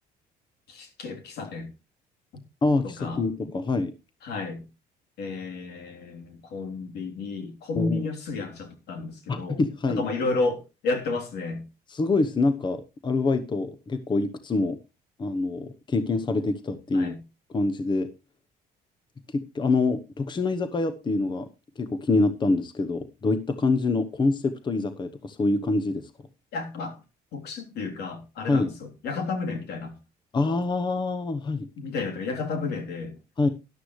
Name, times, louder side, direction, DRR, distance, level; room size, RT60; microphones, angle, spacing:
voice 1, 0.7-1.7 2.8-3.3 4.2-4.6 5.2-9.6 9.9-11.6 16.9-17.2 26.5-27.0 27.3-29.9 31.8-33.1, left 3 dB, 75° left, 3.4 m, -32 dB
voice 2, 2.6-3.9 7.7-8.0 9.3-10.1 11.9-14.8 15.2-17.1 17.5-18.1 19.3-21.5 21.8-26.1 28.5-28.7 30.3-31.7 33.4-33.5, left 3 dB, 25° left, 0.9 m, -25 dB
13.0 x 11.5 x 3.2 m
cardioid pair, 110°, 17 cm